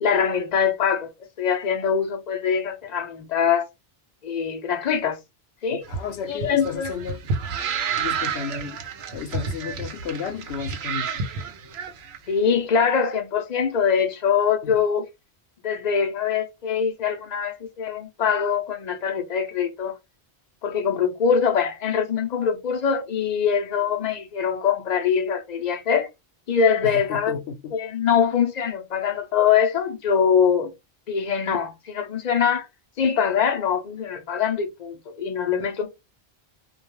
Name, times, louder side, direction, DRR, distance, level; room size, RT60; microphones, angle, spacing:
voice 1, 0.0-1.1 1.4-3.7 4.2-5.2 5.6-5.9 6.3-6.9 12.3-15.1 15.6-20.0 20.6-26.1 26.5-27.4 27.7-30.7 31.1-32.7 33.0-35.9, left 7 dB, 50° left, 0.6 m, -23 dB
voice 2, 5.7-7.2 8.0-8.8 9.1-11.2 14.6-14.8 26.8-27.7, left 6 dB, 80° left, 0.8 m, -33 dB
sound 1, 5.8-12.2, right 5 dB, 85° right, 0.9 m, -30 dB
2.3 x 2.2 x 2.9 m
omnidirectional pair, 1.1 m